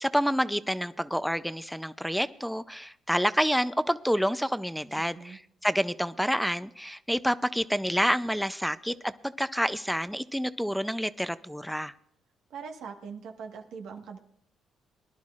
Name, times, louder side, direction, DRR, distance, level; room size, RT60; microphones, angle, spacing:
voice 1, 0.0-11.9, equal, ahead, 14 dB, 0.5 m, -28 dB
voice 2, 12.5-14.2, right 6 dB, 80° right, 3 dB, 1.5 m, -41 dB
22.0 x 11.5 x 2.5 m, 0.68 s
cardioid pair, 90°, 0 cm